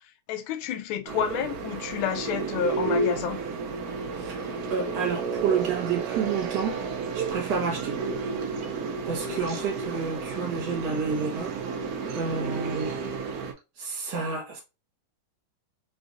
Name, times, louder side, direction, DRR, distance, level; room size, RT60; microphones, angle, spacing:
voice 1, 0.0-3.4 9.1-9.4, left 8 dB, 75° left, 1.3 m, -30 dB
sound 1, 1.1-13.5, right 4 dB, 80° right, 0.8 m, -31 dB
voice 2, 4.2-6.8 7.1-8.0 9.1-11.5 12.1-12.9 13.8-14.6, right 5 dB, 60° right, 1.7 m, -30 dB
3.7 x 2.5 x 2.4 m
omnidirectional pair, 2.3 m